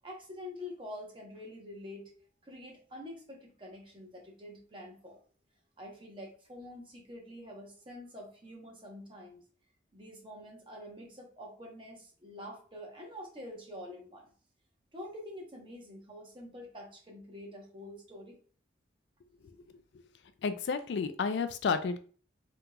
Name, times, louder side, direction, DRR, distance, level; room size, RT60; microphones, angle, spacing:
voice 1, 0.0-2.1 2.4-5.2 5.8-9.4 9.9-14.3 14.9-18.4, left 1 dB, 30° right, -1 dB, 0.9 m, -46 dB
voice 2, 20.4-22.0, left 5 dB, 75° left, 10 dB, 0.3 m, -31 dB
3.7 x 2.8 x 2.3 m, 0.42 s
head